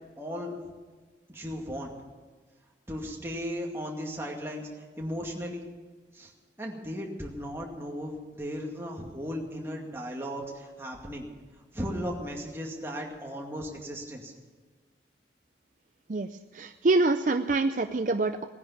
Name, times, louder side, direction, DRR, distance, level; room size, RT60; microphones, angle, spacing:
voice 1, 0.2-0.7 1.3-1.9 2.9-5.6 6.1-6.3 6.6-11.3 11.7-14.3, equal, 15° right, -1 dB, 2.2 m, -36 dB
voice 2, 16.5-18.5, right 2 dB, 45° right, 8 dB, 0.5 m, -25 dB
18.0 x 10.5 x 7.2 m, 1.4 s
head